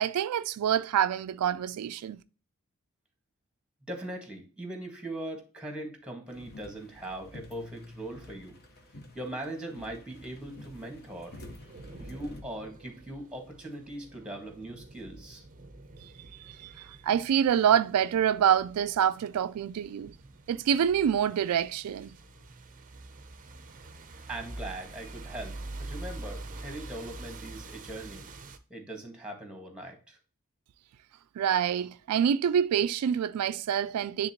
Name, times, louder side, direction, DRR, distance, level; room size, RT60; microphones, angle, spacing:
voice 1, 0.0-2.2 16.0-20.1 20.5-22.1 31.4-34.3, right 9 dB, 85° right, 0.3 m, -26 dB
voice 2, 3.9-8.5 9.1-11.4 12.0-15.4 24.3-28.3 28.7-30.2, right 1 dB, 5° right, 1.6 m, -40 dB
sound 1, 6.3-12.4, left 1 dB, 45° left, 1.1 m, -49 dB
sound 2, 10.1-28.6, right 2 dB, 35° right, 0.6 m, -46 dB
9.6 x 3.6 x 2.9 m
head